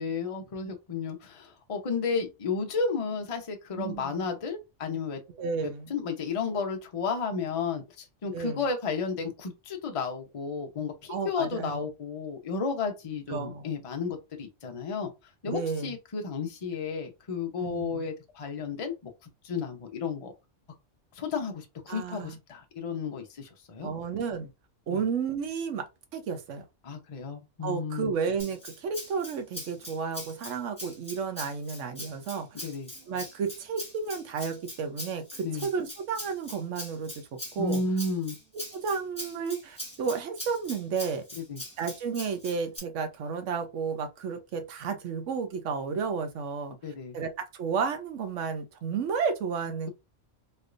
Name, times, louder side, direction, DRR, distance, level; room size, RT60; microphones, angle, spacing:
voice 1, 0.0-5.2 5.6-15.1 15.4-19.1 19.4-20.3 21.2-23.9 24.9-25.0 26.8-28.1 32.6-32.9 35.4-35.7 37.6-38.4 41.3-41.6 46.8-47.2, left 4 dB, 35° left, 0.6 m, -33 dB
voice 2, 3.8-4.3 5.4-5.9 8.3-8.6 11.1-11.9 13.3-13.7 15.4-15.9 17.6-18.1 21.9-22.4 23.8-24.5 24.9-25.9 26.1-26.6 27.6-32.7 33.1-37.8 38.5-41.2 41.8-46.8 47.1-49.9, right 5 dB, 75° right, 1.0 m, -32 dB
Rattle (instrument), 28.4-42.8, left 1 dB, 5° left, 1.3 m, -42 dB
3.2 x 2.9 x 2.5 m
omnidirectional pair, 1.3 m